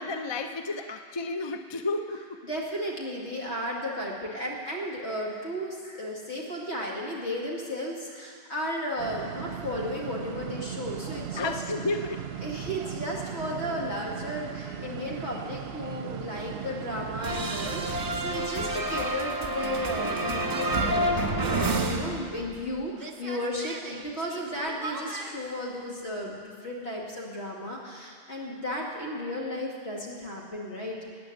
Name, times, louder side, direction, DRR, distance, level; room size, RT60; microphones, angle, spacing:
voice 1, 0.0-2.4 11.4-12.3, left 3 dB, 30° left, 7 dB, 0.6 m, -32 dB
voice 2, 2.4-11.5 12.4-31.0, equal, 70° left, -3 dB, 2.8 m, -34 dB
sound 1, 9.0-18.5, right 9 dB, 70° right, 0.9 m, -38 dB
sound 2, 17.2-22.7 23.0-25.3, right 2 dB, 35° right, 1.3 m, -30 dB
14.5 x 8.8 x 9.2 m, 2.2 s
omnidirectional pair, 1.2 m